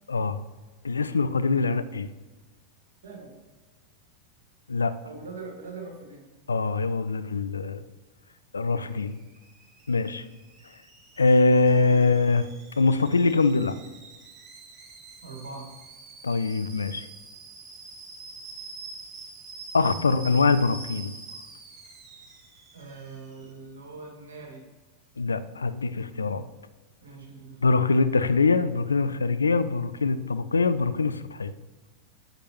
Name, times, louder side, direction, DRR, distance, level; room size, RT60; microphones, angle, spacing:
voice 1, 0.1-0.4 0.8-2.1 4.7-4.9 6.5-7.8 8.5-9.2 9.9-10.3 11.2-12.5 12.8-13.8 16.2-17.1 19.7-21.1 25.2-26.4 27.6-31.5, left 3 dB, 75° left, 12 dB, 0.4 m, -23 dB
voice 2, 3.0-3.4 5.0-6.3 15.2-15.7 22.7-24.6 27.0-27.9, right 4 dB, 65° right, 0 dB, 2.1 m, -42 dB
Alarm / Boiling, 8.7-23.5, right 4 dB, 30° right, 1.3 m, -46 dB
8.9 x 6.9 x 3.0 m, 1.2 s
figure-of-eight pair, 90°, 0 cm